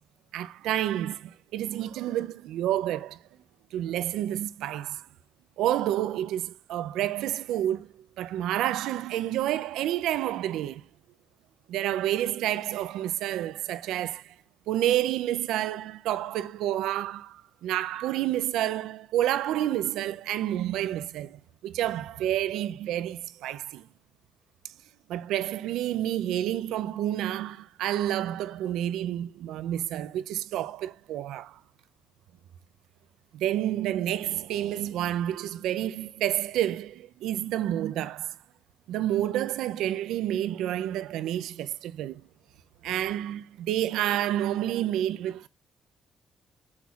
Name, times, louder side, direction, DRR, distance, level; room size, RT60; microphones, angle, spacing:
voice 1, 0.3-3.2 3.7-5.1 5.6-7.9 8.2-10.8 11.7-14.3 14.7-23.9 25.1-31.6 33.3-38.4 38.9-42.2 42.8-45.5, right 12 dB, 90° right, 0.5 m, -29 dB
10.5 x 5.9 x 2.4 m
cardioid pair, 90°, 0 cm